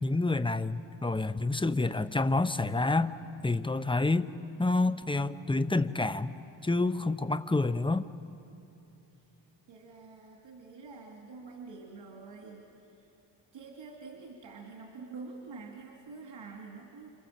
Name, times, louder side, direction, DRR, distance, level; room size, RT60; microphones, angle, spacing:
voice 1, 0.0-3.1 3.4-4.3 4.6-6.4 6.6-8.1, left 2 dB, 10° left, 11 dB, 0.9 m, -28 dB
voice 2, 9.7-13.1 13.5-17.1, right 4 dB, 85° right, 0 dB, 2.6 m, -47 dB
29.0 x 26.5 x 7.6 m, 2.8 s
cardioid pair, 95°, 43 cm